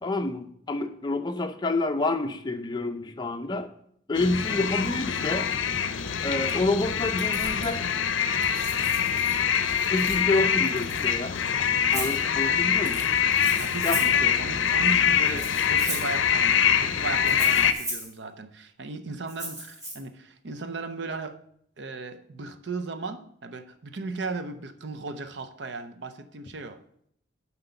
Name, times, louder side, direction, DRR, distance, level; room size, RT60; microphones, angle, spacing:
voice 1, 0.0-3.7 4.1-5.5 6.2-7.9 9.9-11.4 11.9-13.0 13.8-14.0, left 2 dB, 20° left, 6 dB, 0.5 m, -28 dB
sound 1, 4.1-17.7, left 8 dB, 80° left, 0.5 m, -24 dB
sound 2, 6.0-7.7 8.1-11.4 12.8-13.4, right 2 dB, 85° right, 2.1 m, -45 dB
Rattle (instrument), 11.9-12.2 13.3-14.2 15.3-16.2 17.3-18.1 19.3-19.9, right 1 dB, 20° right, 3.6 m, -35 dB
voice 2, 13.6-21.4 21.8-26.8, right 3 dB, 65° right, 8 dB, 0.6 m, -36 dB
7.7 x 4.4 x 6.9 m, 0.69 s
head